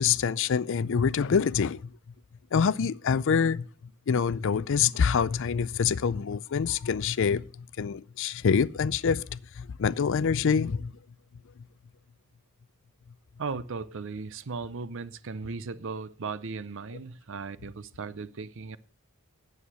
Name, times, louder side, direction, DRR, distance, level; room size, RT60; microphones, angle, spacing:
voice 1, 0.0-1.8 2.5-3.6 4.1-10.9, left 6 dB, 60° left, 0.4 m, -26 dB
voice 2, 13.4-18.8, right 4 dB, 60° right, 0.6 m, -37 dB
9.9 x 8.0 x 6.2 m
head